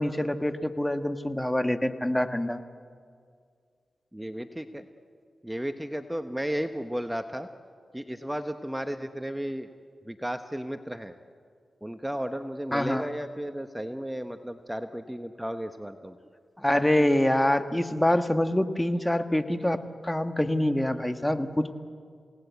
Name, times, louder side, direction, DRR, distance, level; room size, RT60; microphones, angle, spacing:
voice 1, 0.0-2.6 12.7-13.1 16.6-21.7, left 1 dB, 10° left, 9 dB, 1.4 m, -25 dB
voice 2, 4.1-4.8 5.4-7.5 7.9-9.7 10.1-11.1 11.8-16.2, equal, 10° right, 8 dB, 1.1 m, -34 dB
28.5 x 18.0 x 8.2 m, 2.1 s
cardioid pair, 50°, 0 cm